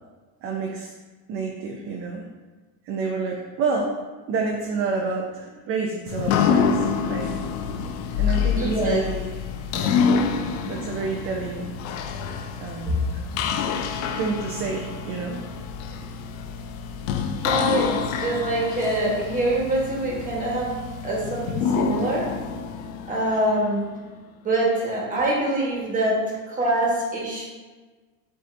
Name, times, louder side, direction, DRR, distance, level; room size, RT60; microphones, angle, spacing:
voice 1, 0.4-0.9 1.3-2.3 2.8-3.9 4.3-7.6 8.1-9.3 9.7-10.1 10.7-11.7 12.6-13.1 14.2-15.5 16.0-16.1, right 4 dB, 35° right, 0 dB, 0.4 m, -29 dB
sound 1, 6.1-23.9, left 6 dB, 90° left, 0.5 m, -27 dB
voice 2, 8.5-9.0 12.9-13.0 17.4-20.7 21.0-22.3 23.1-23.8 24.4-27.4, right 1 dB, 20° right, -4 dB, 1.2 m, -24 dB
7.6 x 2.7 x 2.5 m, 1.3 s
cardioid pair, 150°, 38 cm